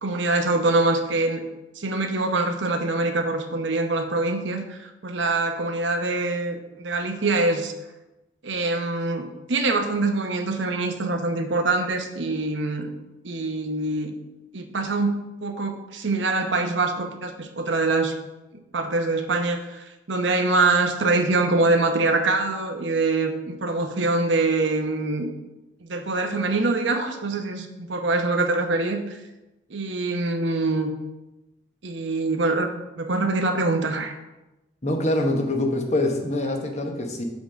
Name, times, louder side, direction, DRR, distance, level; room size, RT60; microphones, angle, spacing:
voice 1, 0.0-1.4 1.8-7.7 8.4-12.9 13.2-14.1 14.5-18.1 18.7-25.3 25.8-29.2 29.7-30.9 31.8-34.1, right 3 dB, 70° right, 6 dB, 0.9 m, -24 dB
voice 2, 34.8-37.2, left 1 dB, 35° left, 3 dB, 1.0 m, -24 dB
7.1 x 3.9 x 6.2 m, 1.0 s
head